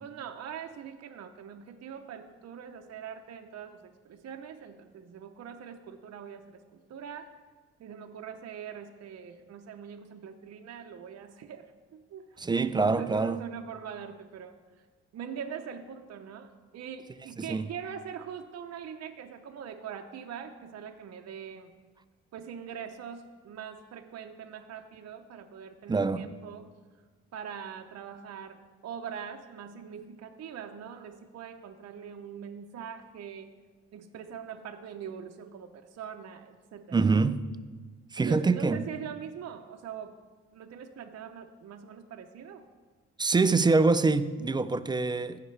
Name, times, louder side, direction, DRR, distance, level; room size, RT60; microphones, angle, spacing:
voice 1, 0.0-7.3 7.8-12.4 12.8-14.6 15.1-21.7 22.3-26.7 27.3-33.5 33.9-37.0 38.2-40.2 40.5-42.7, right 8 dB, 55° right, 0.7 m, -43 dB
voice 2, 12.4-13.4 17.4-17.7 25.9-26.3 36.9-37.4 38.1-38.8 43.2-45.4, right 3 dB, 15° right, 0.3 m, -25 dB
16.0 x 5.8 x 3.3 m
cardioid pair, 90°, 30 cm